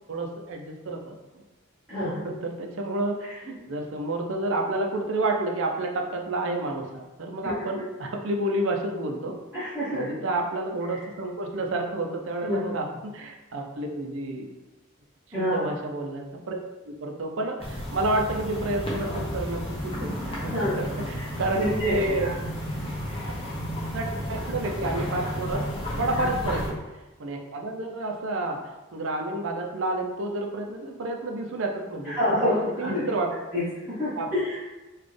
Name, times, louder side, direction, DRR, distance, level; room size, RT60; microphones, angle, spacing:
voice 1, 0.1-1.2 2.0-9.4 9.9-14.5 15.3-16.6 16.9-22.3 23.9-25.6 26.0-33.3 34.1-34.3, right 2 dB, 65° right, 2 dB, 0.5 m, -30 dB
voice 2, 1.9-2.3 7.4-7.5 9.5-10.1 12.4-12.6 15.3-15.7 20.4-20.8 21.5-22.0 22.2-22.3 23.1-23.2 32.1-33.0 33.5-34.6, left 1 dB, 10° right, -14 dB, 0.8 m, -27 dB
sound 1, 17.6-26.7, equal, 25° left, 0.8 m, -32 dB
4.0 x 2.4 x 3.2 m, 1.1 s
head